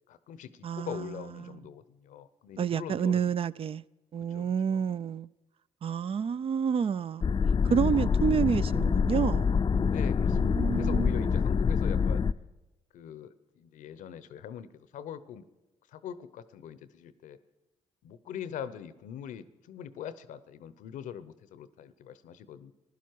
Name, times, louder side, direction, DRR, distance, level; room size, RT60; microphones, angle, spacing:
voice 1, 0.1-3.3 4.2-4.8 9.8-10.4 10.7-12.3 12.9-15.4 15.9-17.4 18.0-22.7, left 9 dB, 75° left, 0.7 m, -42 dB
voice 2, 0.6-1.6 2.6-3.8 4.1-5.3 5.8-7.2 7.6-9.5 10.2-11.4, right 7 dB, 45° right, 0.4 m, -29 dB
sound 1, 7.2-12.3, left 6 dB, 35° left, 0.5 m, -26 dB
15.5 x 11.5 x 4.7 m
supercardioid pair, 55°, 13 cm